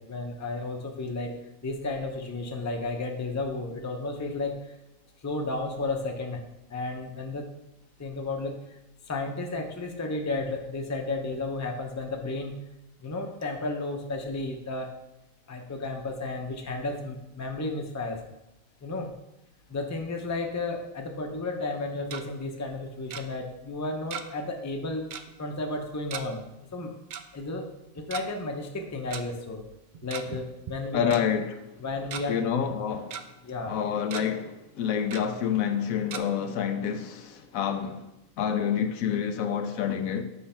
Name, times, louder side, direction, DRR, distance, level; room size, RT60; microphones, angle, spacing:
voice 1, 0.0-4.8 5.2-6.4 6.7-7.4 8.0-8.8 9.0-12.5 13.0-14.9 15.5-18.2 18.8-19.1 19.7-25.0 25.4-26.4 26.7-26.9 27.3-27.7 27.9-29.6 30.0-31.1 31.8-32.4 33.4-33.8, left 2 dB, 15° left, 0.6 m, -33 dB
Tick-tock, 21.8-22.2 23.1-23.2 24.1-24.5 24.7-24.8 25.1-25.3 26.1-26.2 27.1-27.2 28.0-28.2 29.1-29.2 29.9-30.4 30.7-30.8 31.1-31.2 31.8-32.2 32.7-33.2 33.6-33.8 34.1-34.2 35.1-35.2 36.1-36.2, right 8 dB, 85° right, 0.4 m, -37 dB
voice 2, 30.9-31.8 32.3-33.2 33.7-38.1 38.4-40.2, left 8 dB, 85° left, 1.1 m, -28 dB
8.2 x 3.3 x 5.6 m
omnidirectional pair, 1.4 m